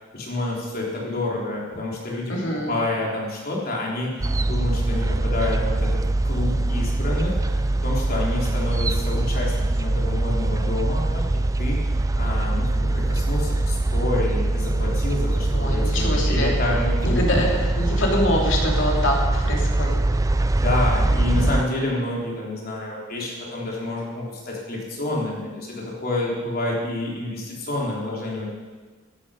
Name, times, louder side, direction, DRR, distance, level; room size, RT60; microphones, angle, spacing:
voice 1, 0.1-11.3 11.6-11.8 12.2-17.2 20.1-20.2 20.5-28.5, left 2 dB, 50° left, -3 dB, 3.6 m, -28 dB
voice 2, 2.3-2.7 15.5-16.5 17.0-20.0, left 1 dB, 65° left, -1 dB, 2.8 m, -25 dB
sound 1, 4.2-21.6, right 2 dB, 15° right, 0.4 m, -23 dB
13.5 x 11.5 x 5.1 m, 1.4 s
head